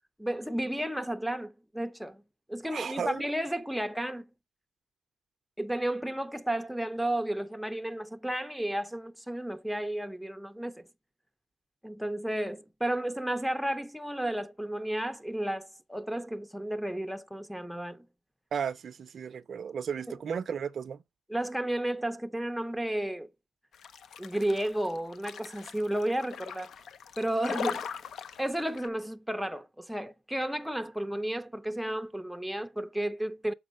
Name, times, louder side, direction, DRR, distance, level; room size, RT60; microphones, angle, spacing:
voice 1, 0.2-2.2 2.5-4.3 5.6-10.9 11.8-18.1 20.1-20.2 21.3-23.3 24.2-26.7 27.2-27.9 28.4-33.5, right 1 dB, ahead, 0.6 m, -32 dB
voice 2, 2.7-3.3 18.5-21.0, right 7 dB, 50° right, 0.5 m, -34 dB
sound 1, 23.7-28.9, left 7 dB, 60° left, 0.7 m, -40 dB
7.2 x 4.8 x 4.7 m
cardioid pair, 90°, 0 cm